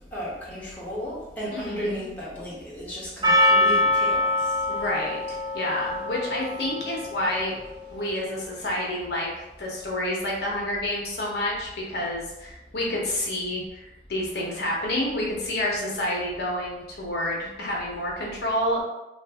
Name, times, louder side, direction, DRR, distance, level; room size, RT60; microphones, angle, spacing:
voice 1, 0.0-4.4, equal, 10° left, -8 dB, 0.9 m, -34 dB
voice 2, 1.5-2.0 4.7-7.5 7.9-9.3 9.6-13.8 14.1-18.8, left 1 dB, 65° left, -3 dB, 0.8 m, -29 dB
Percussion, 3.2-7.8, left 1 dB, 25° right, 0.7 m, -24 dB
2.7 x 2.5 x 3.3 m, 0.97 s
head